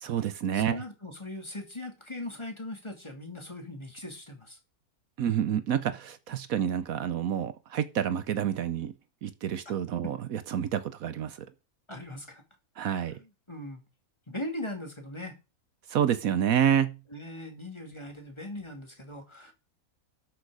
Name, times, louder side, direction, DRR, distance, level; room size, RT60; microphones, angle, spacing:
voice 1, 0.0-0.8 5.2-8.9 9.2-11.4 12.8-13.2 15.9-17.0, right 9 dB, 70° right, 1.2 m, -28 dB
voice 2, 0.5-4.6 11.9-12.4 13.1-13.8 14.3-15.4 17.1-19.5, left 1 dB, 20° left, 2.4 m, -40 dB
13.0 x 6.5 x 4.8 m
omnidirectional pair, 1.6 m